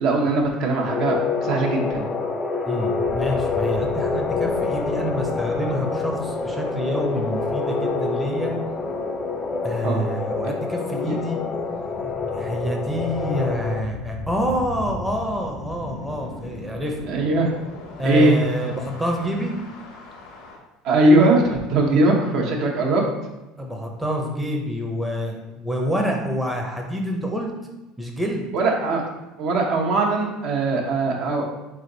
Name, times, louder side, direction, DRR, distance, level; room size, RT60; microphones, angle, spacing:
voice 1, 0.0-2.1 9.8-10.0 11.0-11.2 17.1-17.5 18.0-18.4 20.8-23.0 28.5-29.0 29.4-31.5, right 2 dB, 65° right, 0 dB, 1.0 m, -20 dB
sound 1, 0.9-13.8, left 4 dB, 25° left, 0.4 m, -26 dB
voice 2, 2.7-8.5 9.6-11.4 12.3-17.0 18.0-19.5 23.6-27.5 28.0-28.5, equal, 5° right, 0 dB, 0.7 m, -27 dB
sound 2, 3.0-20.6, left 2 dB, 75° left, 1.1 m, -38 dB
3.9 x 3.3 x 3.9 m, 1.0 s
supercardioid pair, 105°, 0 cm